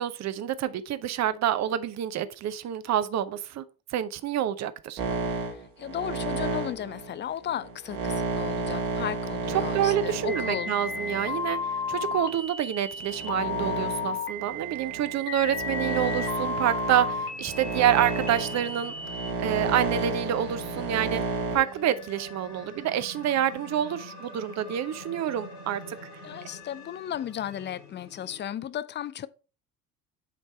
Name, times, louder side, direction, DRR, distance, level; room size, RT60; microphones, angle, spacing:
voice 1, 0.0-3.6 3.9-5.0 9.5-11.6 11.9-18.9 19.4-21.2 21.5-26.0, right 11 dB, 40° right, 0.7 m, -27 dB
sound 1, 5.0-12.3 13.0-21.6, right 4 dB, 80° right, 2.0 m, -32 dB
voice 2, 5.3-10.7 26.2-29.3, left 10 dB, 25° left, 0.5 m, -35 dB
sound 2, 10.3-19.3, left 4 dB, 55° left, 1.7 m, -34 dB
sound 3, 15.3-28.4, left 2 dB, 80° left, 1.7 m, -46 dB
8.4 x 3.3 x 4.3 m
hypercardioid pair, 60°, 44 cm